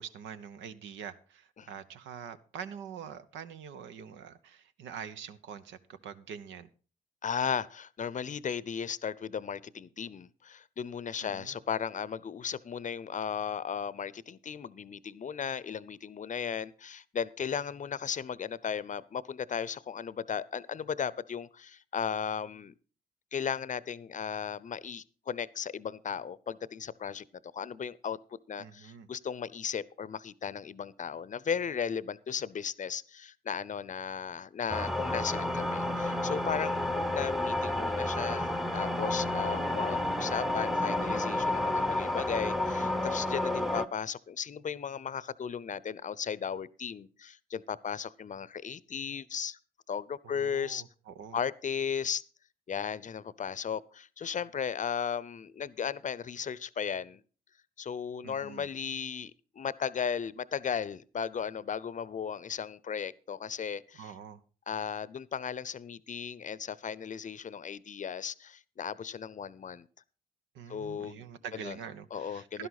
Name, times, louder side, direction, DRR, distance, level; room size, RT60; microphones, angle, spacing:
voice 1, 0.0-6.7 11.2-11.6 28.6-29.1 50.2-51.4 58.2-58.7 63.9-64.4 70.5-72.7, right 8 dB, 75° right, 0.9 m, -45 dB
voice 2, 7.2-22.7 23.3-27.3 27.5-28.2 28.5-49.6 49.9-50.8 51.3-52.2 52.7-57.2 57.8-64.1 64.7-69.9 70.7-71.3 71.5-71.8 72.1-72.7, left 7 dB, 40° left, 0.7 m, -36 dB
sound 1, 34.7-43.9, left 1 dB, ahead, 0.8 m, -30 dB
11.5 x 11.0 x 4.1 m
hypercardioid pair, 45°, 19 cm